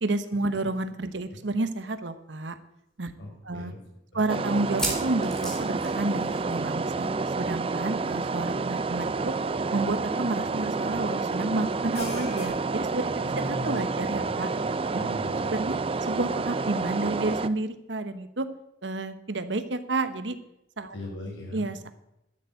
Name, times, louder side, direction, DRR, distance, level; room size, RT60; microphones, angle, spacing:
voice 1, 0.0-2.6 3.0-3.1 3.4-3.7 4.1-7.1 7.4-9.3 9.7-14.5 14.9-15.0 15.5-15.8 16.1-18.5 18.8-20.4 20.8-20.9 21.5-21.9, right 2 dB, 75° right, 11 dB, 1.0 m, -30 dB
sound 1, 2.3-2.4 3.0-3.1 4.6-6.7 7.0-7.2 7.4-7.5 9.0-9.1, right 1 dB, 5° left, 4.0 m, -34 dB
voice 2, 3.2-3.8 4.1-4.2 13.4-14.4 14.6-15.6 20.9-21.7, equal, 85° left, -2 dB, 5.6 m, -39 dB
sound 2, 4.3-17.5, right 4 dB, 30° right, 0.4 m, -29 dB
sound 3, 7.8-7.9 8.4-8.5 10.4-10.6 11.6-12.5, left 3 dB, 60° left, 5.3 m, -43 dB
12.0 x 7.0 x 8.0 m, 0.84 s
head